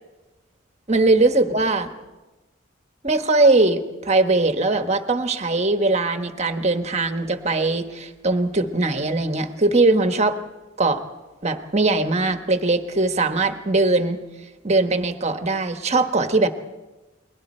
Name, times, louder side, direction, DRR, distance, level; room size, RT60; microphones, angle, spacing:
voice 1, 0.9-1.9 3.0-10.4 10.8-11.0 11.4-14.2 14.6-16.5, right 2 dB, 35° right, 7 dB, 1.3 m, -20 dB
30.0 x 21.5 x 4.4 m, 1.1 s
head